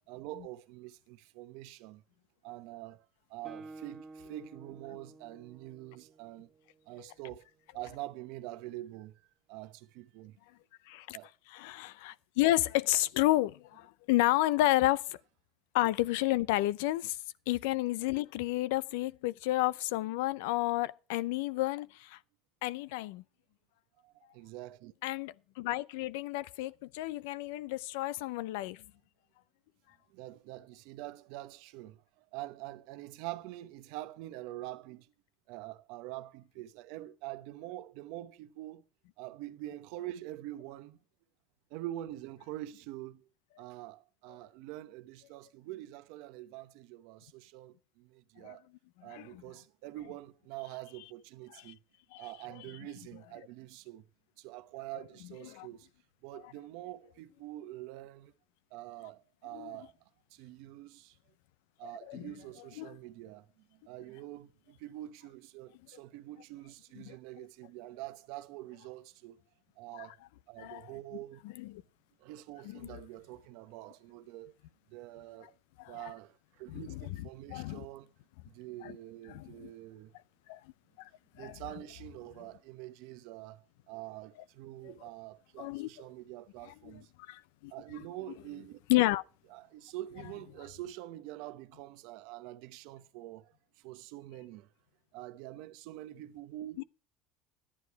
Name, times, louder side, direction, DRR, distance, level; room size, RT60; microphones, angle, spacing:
voice 1, 0.1-2.0 2.4-6.5 6.9-7.5 7.7-9.2 9.5-10.4 11.1-11.3 24.0-24.9 30.1-35.1 35.5-38.8 39.2-41.0 41.7-43.3 43.6-48.6 49.0-51.8 52.2-54.1 54.4-55.9 56.2-58.3 58.7-59.9 60.3-61.2 61.8-69.4 69.8-70.2 70.5-71.4 72.2-74.5 74.9-75.6 75.9-78.1 78.4-80.1 81.3-87.1 87.7-88.8 89.5-94.7 95.1-96.8, right 15 dB, 75° right, 0.9 m, -45 dB
Guitar, 3.4-7.1, right 3 dB, 35° right, 1.4 m, -51 dB
voice 2, 10.9-11.2 11.5-15.2 15.7-17.2 17.5-22.2 22.6-23.2 25.0-28.8 48.4-48.6 49.1-49.4 51.5-51.7 52.1-52.3 55.5-55.7 59.5-59.7 61.8-62.3 62.8-63.0 67.1-67.2 69.9-70.1 70.6-70.9 71.6-71.7 72.7-72.9 75.8-76.0 76.7-77.0 77.5-77.8 78.8-78.9 79.3-79.7 80.5-80.6 81.0-81.1 81.4-81.5 85.6-85.9 86.7-86.9 87.3-87.7 88.9-89.2, left 17 dB, 90° left, 0.5 m, -31 dB
12.0 x 9.9 x 4.6 m
supercardioid pair, 120°, 0 cm